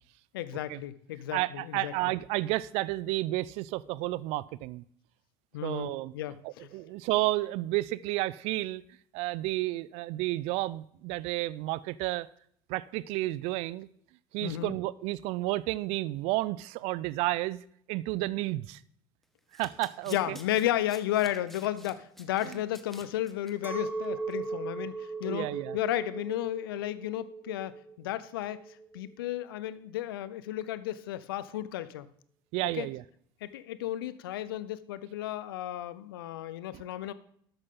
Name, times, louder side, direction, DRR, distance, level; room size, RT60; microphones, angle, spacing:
voice 1, 0.3-1.9 5.5-6.7 14.4-14.7 20.1-25.5 25.7-28.6 28.9-32.1 32.7-32.9 33.4-37.1, left 13 dB, 75° left, 16 dB, 0.7 m, -33 dB
voice 2, 1.3-4.8 5.6-6.1 6.4-8.8 9.1-12.3 12.7-13.9 14.3-18.8 19.5-20.4 22.4-22.6 25.2-25.8 32.5-33.0 36.7-36.8, right 18 dB, 60° right, 20 dB, 0.5 m, -31 dB
Domestic sounds home sounds, 19.2-23.5 23.9-24.1 24.3-24.4, equal, ahead, 1.5 m, -51 dB
Chink clink, 23.6-29.1, right 4 dB, 15° right, 1.7 m, -38 dB
12.5 x 8.9 x 3.8 m, 0.64 s
hypercardioid pair, 70°, 12 cm